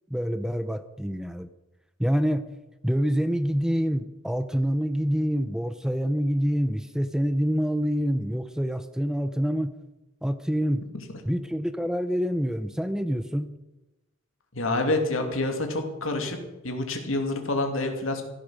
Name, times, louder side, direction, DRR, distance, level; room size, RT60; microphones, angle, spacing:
voice 1, 0.1-1.5 2.0-2.5 2.8-9.7 10.2-10.8 11.2-13.5, equal, 5° right, 11 dB, 0.6 m, -26 dB
voice 2, 14.5-16.4 16.6-18.2, left 2 dB, 70° left, 4 dB, 2.8 m, -27 dB
15.5 x 12.5 x 6.4 m, 1.0 s
head